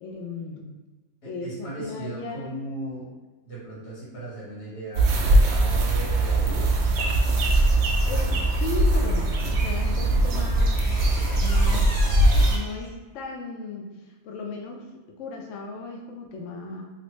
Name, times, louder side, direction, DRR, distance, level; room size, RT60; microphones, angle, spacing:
voice 1, 0.0-0.7 1.2-2.5 8.0-10.9 11.3-12.1 12.5-16.8, left 3 dB, 65° left, 0 dB, 0.8 m, -36 dB
voice 2, 1.2-3.1 3.4-6.7, right 2 dB, 80° left, -7 dB, 1.9 m, -37 dB
sound 1, 4.9-12.6, right 1 dB, 70° right, 0.7 m, -21 dB
sound 2, 10.7-12.9, right 1 dB, 30° left, 1.3 m, -38 dB
3.2 x 2.6 x 3.0 m, 1.2 s
omnidirectional pair, 1.7 m